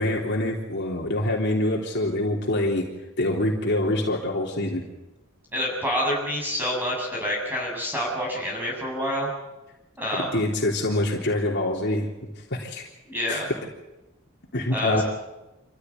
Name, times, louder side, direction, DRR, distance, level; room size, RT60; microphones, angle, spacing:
voice 1, 0.0-2.9 3.2-4.8 10.3-12.1 12.5-12.8 13.3-13.4 14.5-15.0, left 1 dB, 55° left, -1 dB, 3.7 m, -25 dB
voice 2, 5.5-9.3 10.0-10.4 13.1-13.5 14.7-15.0, equal, 10° right, -3 dB, 7.4 m, -27 dB
27.5 x 15.0 x 9.6 m, 1.0 s
head